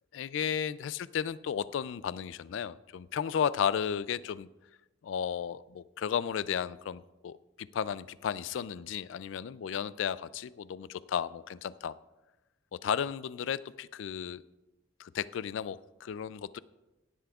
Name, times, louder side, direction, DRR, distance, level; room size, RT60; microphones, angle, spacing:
voice 1, 0.1-4.5 5.0-11.9 12.8-14.4 15.0-16.6, left 8 dB, 70° left, 18 dB, 0.3 m, -34 dB
16.5 x 11.0 x 2.4 m, 1.1 s
head